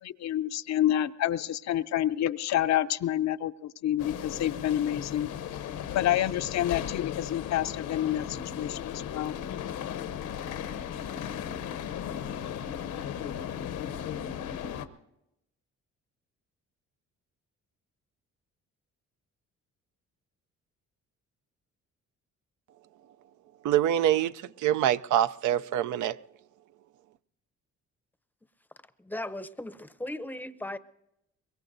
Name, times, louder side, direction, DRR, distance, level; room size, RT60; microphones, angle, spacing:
voice 1, 0.0-5.3 5.9-9.3, left 12 dB, 65° left, 0.6 m, -28 dB
sound 1, 4.0-14.9, left 9 dB, 85° left, 1.0 m, -36 dB
voice 2, 23.6-26.2, right 11 dB, 75° right, 0.5 m, -25 dB
voice 3, 29.0-30.8, left 1 dB, 5° left, 0.6 m, -37 dB
24.0 x 22.0 x 2.7 m
cardioid pair, 90°, 30 cm